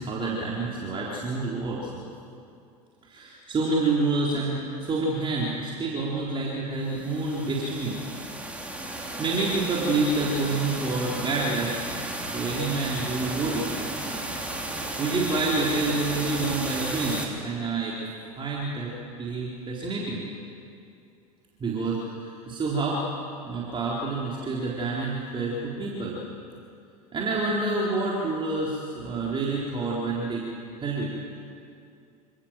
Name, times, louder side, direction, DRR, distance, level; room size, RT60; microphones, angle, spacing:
voice 1, 0.0-2.0 3.0-8.0 8.8-11.7 12.3-13.7 15.0-18.0 18.4-18.9 19.2-20.3 21.6-23.0 23.4-26.2 27.1-30.5 30.8-31.1, right 3 dB, 25° right, -4 dB, 3.9 m, -28 dB
sound 1, 6.9-17.3, right 1 dB, 5° right, 3.7 m, -34 dB
28.0 x 17.0 x 7.6 m, 2.6 s
hypercardioid pair, 90°, 19 cm